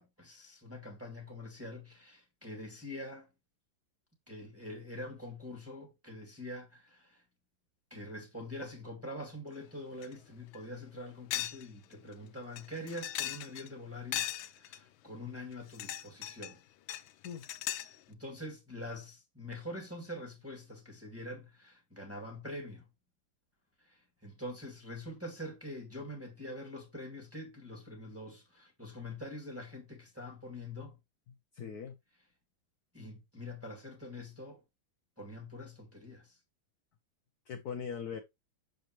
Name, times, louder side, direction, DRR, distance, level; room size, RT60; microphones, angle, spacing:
voice 1, 0.0-3.3 4.3-7.2 7.9-14.3 14.6-16.6 17.9-22.8 23.8-31.0 32.9-34.6 35.2-36.3, left 1 dB, 5° right, 1.7 m, -45 dB
sound 1, 10.0-10.1 10.5-10.6 11.3-11.6 11.9-12.0 12.6-13.7 14.1-14.8 15.5-16.5 16.9-18.0, left 13 dB, 85° left, 1.4 m, -38 dB
voice 2, 31.3-32.0 37.5-38.2, left 7 dB, 60° left, 1.2 m, -41 dB
6.7 x 5.2 x 3.0 m
omnidirectional pair, 2.1 m